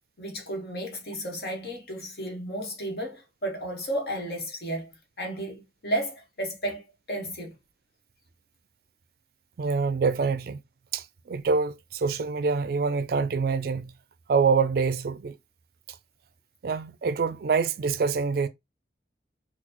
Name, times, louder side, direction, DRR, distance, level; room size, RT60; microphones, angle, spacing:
voice 1, 0.2-4.9 5.2-7.5, right 1 dB, 60° left, 1.3 m, -33 dB
voice 2, 9.6-10.6 10.9-13.9 14.3-15.4 16.6-18.5, right 5 dB, 55° right, 0.3 m, -25 dB
3.9 x 2.3 x 2.9 m
head